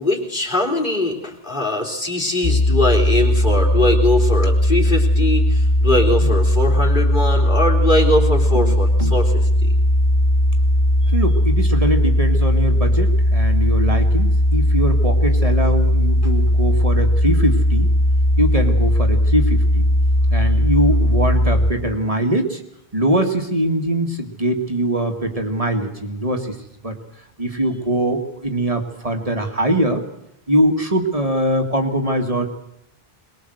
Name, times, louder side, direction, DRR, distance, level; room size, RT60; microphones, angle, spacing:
voice 1, 0.0-9.7, left 1 dB, 55° left, 0 dB, 3.9 m, -21 dB
sound 1, 2.4-21.7, left 1 dB, 90° left, 2.8 m, -17 dB
voice 2, 8.5-9.2 11.1-17.9 18.4-19.9 20.3-22.6 22.9-26.6 26.8-27.0 27.4-30.1 30.5-32.5, right 1 dB, 35° right, 4 dB, 2.1 m, -22 dB
22.5 x 21.0 x 7.9 m, 0.79 s
omnidirectional pair, 1.0 m